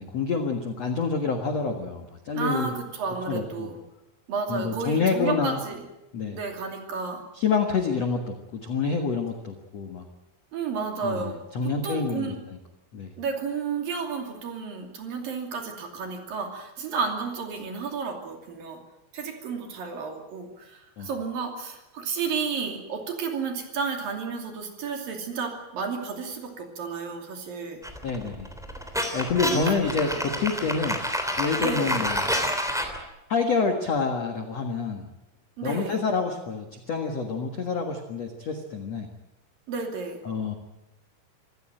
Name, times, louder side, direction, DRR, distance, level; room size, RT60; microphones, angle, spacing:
voice 1, 0.0-2.7 3.3-3.7 4.5-5.6 6.1-6.4 7.3-10.0 11.0-12.3 12.9-13.1 21.0-21.1 28.0-28.5 29.1-31.0 31.4-32.2 33.3-35.0 35.6-39.1 40.2-40.5, left 5 dB, 65° left, 5 dB, 1.6 m, -27 dB
voice 2, 2.3-3.8 4.3-5.8 6.3-7.2 10.5-12.4 13.2-18.8 19.1-27.8 29.5-29.7 31.6-32.0 35.6-36.0 39.7-40.2, right 5 dB, 50° right, 4 dB, 4.0 m, -32 dB
sound 1, 27.8-33.0, equal, ahead, 1.9 m, -28 dB
26.5 x 15.5 x 9.0 m, 0.97 s
omnidirectional pair, 5.7 m